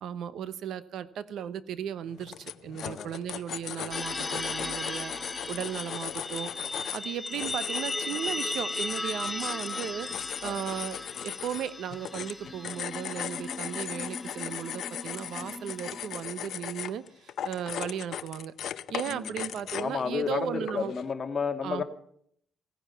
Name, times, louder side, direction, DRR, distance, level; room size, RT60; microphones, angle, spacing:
voice 1, 0.0-6.5 6.9-10.1 10.4-18.5 18.9-20.9 21.6-21.8, right 9 dB, 75° right, 15 dB, 0.9 m, -36 dB
sound 1, 2.1-20.0 20.7-21.1, left 10 dB, 70° left, 0.7 m, -38 dB
sound 2, 3.9-16.4, left 2 dB, 15° left, 0.8 m, -37 dB
voice 2, 19.8-21.8, left 5 dB, 35° left, 5 dB, 1.9 m, -31 dB
17.0 x 10.0 x 8.3 m, 0.66 s
cardioid pair, 130°, 0 cm